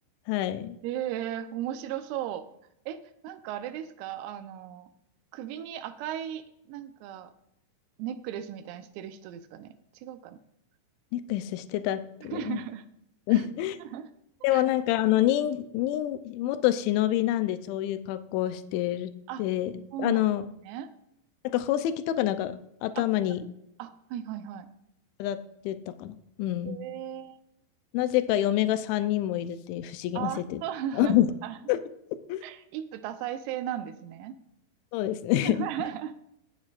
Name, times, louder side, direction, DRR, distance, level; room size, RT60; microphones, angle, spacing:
voice 1, 0.3-0.8 11.1-12.6 13.3-13.8 14.4-19.1 19.4-19.7 20.0-20.4 21.4-23.4 25.2-25.4 25.6-26.8 27.9-30.6 31.0-31.3 31.7-31.8 32.3-32.4 34.9-35.7, left 13 dB, 80° left, 11 dB, 2.7 m, -27 dB
voice 2, 0.8-2.5 2.9-4.9 5.3-7.3 8.0-10.4 12.2-12.9 13.3-13.5 13.8-14.1 14.5-14.6 19.3-19.4 19.9-20.3 20.6-20.9 23.0-23.1 23.8-24.7 26.7-27.4 30.2-31.6 32.4-34.4 35.5-36.1, right 10 dB, 90° right, 10 dB, 3.5 m, -36 dB
20.0 x 8.7 x 2.5 m, 0.80 s
omnidirectional pair, 5.9 m